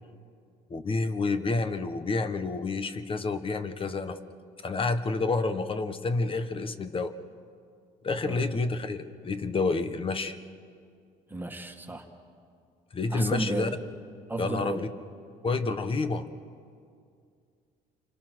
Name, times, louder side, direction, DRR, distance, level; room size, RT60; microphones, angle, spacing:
voice 1, 0.7-4.2 4.6-7.1 8.0-10.4 12.9-13.7 14.4-14.9 15.4-16.3, left 3 dB, 30° left, 11 dB, 1.3 m, -29 dB
voice 2, 11.3-12.1 13.1-13.7 14.3-14.8, right 3 dB, 10° right, 4 dB, 2.0 m, -33 dB
29.0 x 25.0 x 6.2 m, 2.3 s
cardioid pair, 110°, 17 cm